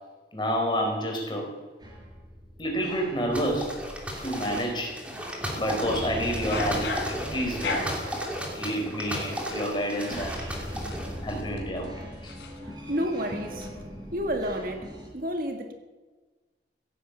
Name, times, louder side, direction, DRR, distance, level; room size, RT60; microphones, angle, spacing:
voice 1, 0.3-1.5 2.6-3.7 4.2-4.9 5.5-7.9 8.5-10.4 11.2-11.9 12.2-12.3, equal, 25° left, 1 dB, 4.5 m, -29 dB
sound 1, 1.8-15.1, equal, 25° right, 4.7 m, -40 dB
sound 2, 3.3-11.4, equal, 5° right, 2.9 m, -35 dB
sound 3, 5.0-5.1 6.3-8.1 9.2-13.0 13.3-13.7, left 3 dB, 90° left, 3.5 m, -36 dB
voice 2, 12.6-13.7 14.1-14.9 15.1-15.7, equal, 50° right, 5 dB, 1.6 m, -30 dB
16.0 x 10.5 x 8.2 m, 1.3 s
head